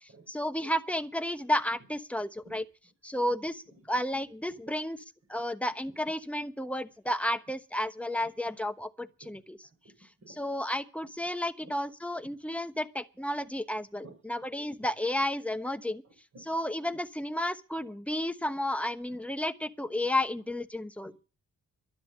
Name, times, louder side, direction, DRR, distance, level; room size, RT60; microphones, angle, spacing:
voice 1, 0.0-2.6 3.0-5.0 5.3-9.7 10.3-16.0 16.5-21.1, left 1 dB, 5° left, 1.1 m, -32 dB
voice 2, 16.0-16.5 19.1-19.2 21.0-21.1, right 2 dB, 45° right, 5.2 m, -53 dB
12.0 x 10.0 x 7.5 m
cardioid pair, 90°, 36 cm